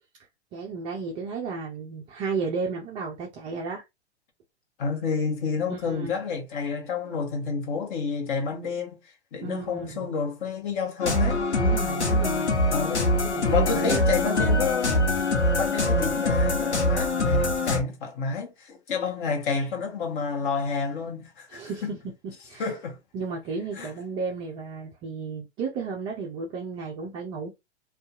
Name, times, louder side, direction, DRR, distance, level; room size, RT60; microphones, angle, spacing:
voice 1, 0.5-3.8 5.7-6.2 9.4-10.1 11.6-12.6 13.2-14.5 15.8-16.2 21.5-22.0 22.5-22.6 23.1-27.5, right 4 dB, 15° right, 0.3 m, -33 dB
voice 2, 4.8-9.0 9.3-11.4 12.7-15.0 15.6-21.9 22.6-23.0 23.8-23.9, left 5 dB, 50° left, 1.0 m, -29 dB
sound 1, 11.0-17.8, left 1 dB, 90° left, 0.9 m, -23 dB
2.6 x 2.3 x 2.3 m
hypercardioid pair, 115°, 33 cm